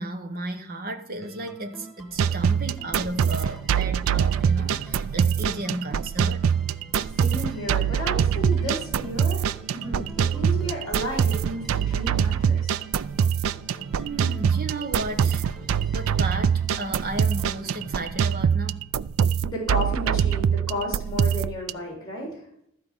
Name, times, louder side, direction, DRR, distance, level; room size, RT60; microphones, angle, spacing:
voice 1, 0.0-6.5 13.9-15.4 15.9-18.9, right 1 dB, 40° right, 1.1 m, -34 dB
sound 1, 1.2-18.7, right 1 dB, ahead, 1.1 m, -47 dB
sound 2, 2.2-21.7, right 7 dB, 65° right, 0.3 m, -24 dB
voice 2, 7.0-12.8 15.6-15.8 19.4-22.5, equal, 20° left, 3.5 m, -33 dB
13.0 x 4.8 x 7.3 m
head